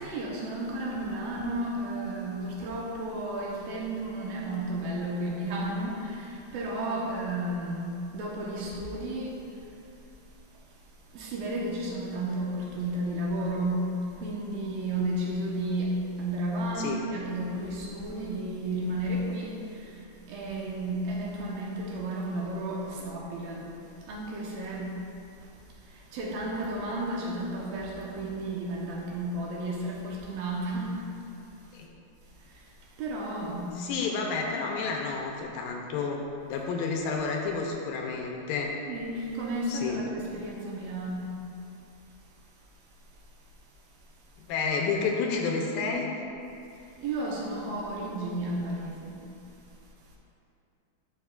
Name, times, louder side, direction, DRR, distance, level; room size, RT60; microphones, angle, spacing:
voice 1, 0.0-9.4 11.1-23.7 24.1-25.0 25.4-25.5 25.9-31.0 32.5-32.7 33.0-33.8 38.9-41.4 47.0-49.2, right 1 dB, 75° right, -3 dB, 2.6 m, -33 dB
voice 2, 33.8-36.2 36.5-38.7 39.7-40.0 44.4-46.1, left 4 dB, 80° left, 1 dB, 2.3 m, -30 dB
13.0 x 5.5 x 2.3 m, 2.8 s
omnidirectional pair, 4.3 m